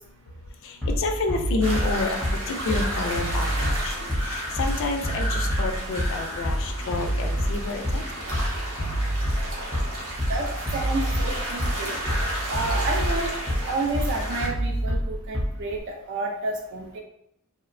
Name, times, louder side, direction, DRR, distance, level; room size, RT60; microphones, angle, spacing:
voice 1, 0.3-8.2, left 3 dB, 60° left, 4 dB, 0.3 m, -30 dB
Bass drum, 0.8-15.8, equal, 5° left, 0.6 m, -27 dB
sound 1, 1.6-14.5, right 1 dB, 75° right, 0.8 m, -33 dB
voice 2, 10.7-12.0 12.5-13.3 13.7-17.0, right 2 dB, 60° right, 0 dB, 0.3 m, -30 dB
2.8 x 2.0 x 2.5 m, 0.76 s
head